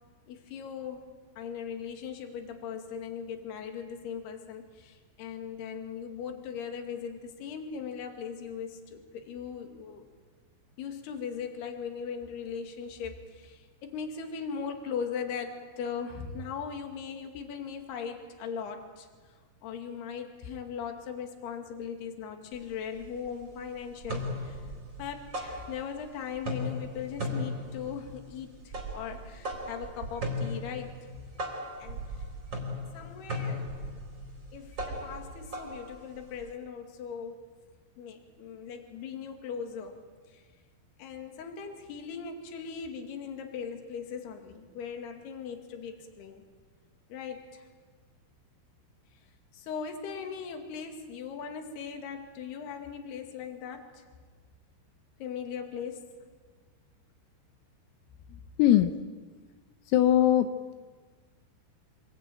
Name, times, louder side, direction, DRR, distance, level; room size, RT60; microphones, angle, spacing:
voice 1, 0.3-1.0 1.4-10.0 10.8-19.1 19.6-24.6 25.0-30.9 31.8-32.0 32.9-33.7 34.5-37.4 38.0-40.0 40.3-40.4 41.0-46.4 47.1-47.7 49.5-54.0 55.2-56.1, left 7 dB, 60° left, 5 dB, 3.9 m, -39 dB
sound 1, 22.5-22.6 23.0-23.6 23.9-26.1 26.4-36.5, left 1 dB, 25° right, 3.9 m, -37 dB
voice 2, 58.3-59.0 59.9-60.5, left 11 dB, 85° left, 8 dB, 3.7 m, -22 dB
28.0 x 21.0 x 9.2 m, 1.5 s
omnidirectional pair, 5.9 m